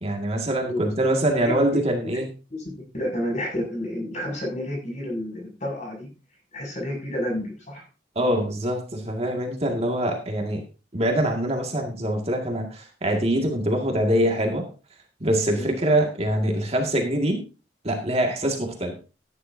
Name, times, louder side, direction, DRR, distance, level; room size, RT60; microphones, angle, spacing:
voice 1, 0.0-2.3 8.2-10.6 10.9-14.7 15.2-17.4 17.8-18.9, right 1 dB, 35° right, 2 dB, 2.1 m, -24 dB
voice 2, 2.5-6.1 6.5-7.8 15.5-15.7, left 1 dB, 45° left, 1 dB, 6.7 m, -30 dB
14.5 x 10.0 x 2.7 m, 0.33 s
head